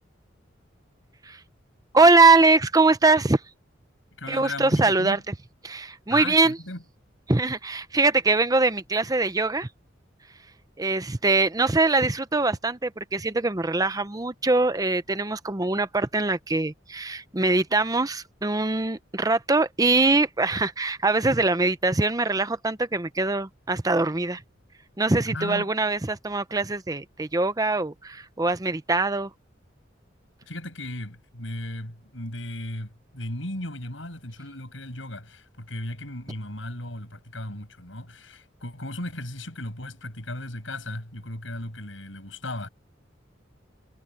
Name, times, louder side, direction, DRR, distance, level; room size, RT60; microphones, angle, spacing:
voice 1, 1.9-3.4 4.3-5.3 5.6-6.6 7.3-9.7 10.8-24.4 25.0-29.3, right 3 dB, 20° right, 0.8 m, -22 dB
voice 2, 4.2-5.2 6.1-6.8 25.3-25.7 30.5-42.7, left 1 dB, 90° left, 7.7 m, -36 dB
head